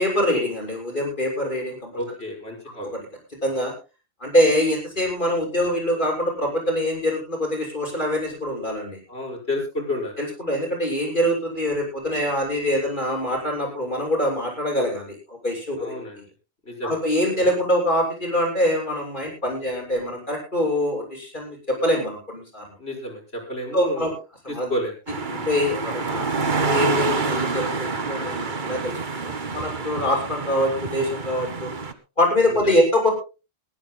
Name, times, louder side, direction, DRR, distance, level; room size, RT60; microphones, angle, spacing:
voice 1, 0.0-1.9 2.8-3.0 3.4-3.7 4.2-9.0 10.2-15.9 16.8-22.7 23.7-24.1 24.4-24.7 25.3-31.7 32.2-33.1, left 1 dB, 45° left, 0 dB, 6.8 m, -24 dB
voice 2, 1.9-2.9 9.1-10.2 15.8-16.2 16.7-17.0 22.8-24.1 24.7-25.0 32.5-32.7, left 1 dB, 70° left, 0 dB, 5.5 m, -30 dB
sound 1, 25.1-31.9, right 4 dB, 45° right, 1.4 m, -27 dB
22.0 x 16.0 x 2.2 m, 0.31 s
omnidirectional pair, 1.1 m